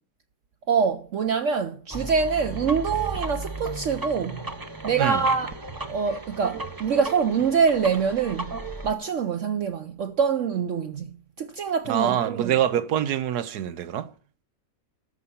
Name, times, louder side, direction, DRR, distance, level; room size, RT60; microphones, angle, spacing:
voice 1, 0.7-4.4 4.8-5.5 5.8-8.6 8.8-12.5, right 6 dB, 60° right, 0.9 m, -25 dB
sound 1, 1.9-8.9, right 2 dB, 25° right, 0.5 m, -35 dB
voice 2, 11.9-14.1, right 10 dB, 90° right, 1.4 m, -25 dB
13.5 x 5.5 x 8.5 m
omnidirectional pair, 1.6 m